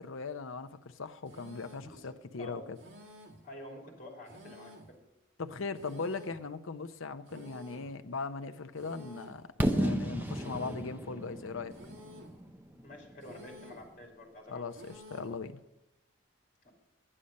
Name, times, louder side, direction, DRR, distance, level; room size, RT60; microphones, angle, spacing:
voice 1, 0.0-2.8 5.4-11.7 14.5-15.6, left 4 dB, 85° left, 9 dB, 0.7 m, -39 dB
sound 1, 1.3-2.0 2.8-3.5 4.3-5.0 5.8-6.5 7.3-8.0 8.8-9.5 10.3-11.0 11.7-12.4 13.2-13.9 14.7-15.4, equal, 75° right, 1.9 m, -52 dB
voice 2, 1.8-2.7 3.4-5.0 12.8-14.6 16.6-16.7, left 1 dB, 40° left, -1 dB, 2.9 m, -49 dB
Fireworks, 9.6-13.5, right 1 dB, 10° right, 0.6 m, -33 dB
11.5 x 10.0 x 5.3 m, 0.97 s
head